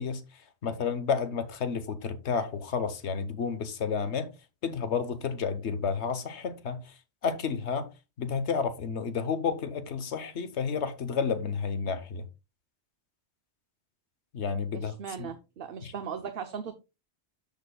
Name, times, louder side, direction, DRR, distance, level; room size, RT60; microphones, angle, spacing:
voice 1, 0.0-4.3 4.6-7.9 8.2-12.3 14.3-15.3 15.8-15.9, left 6 dB, 85° left, 1.2 m, -31 dB
voice 2, 14.7-16.7, right 7 dB, 60° right, 0.9 m, -38 dB
13.0 x 5.1 x 2.3 m
omnidirectional pair, 1.1 m